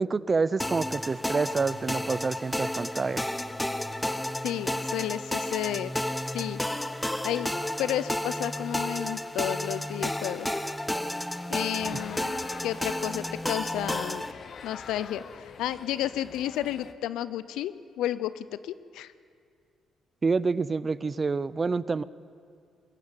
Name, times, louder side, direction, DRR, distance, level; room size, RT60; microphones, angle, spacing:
voice 1, 0.0-3.3 11.9-12.0 20.2-22.0, right 4 dB, 30° right, 18 dB, 0.5 m, -27 dB
sound 1, 0.6-14.3, left 1 dB, 5° left, 0.9 m, -32 dB
voice 2, 4.4-5.9 6.3-6.6 7.2-7.5 7.8-10.6 11.5-14.3 14.6-19.1, left 12 dB, 90° left, 15 dB, 0.7 m, -32 dB
sound 2, 11.8-16.9, left 6 dB, 55° left, 1.0 m, -45 dB
21.5 x 14.5 x 8.8 m, 2.3 s
cardioid pair, 90°, 0 cm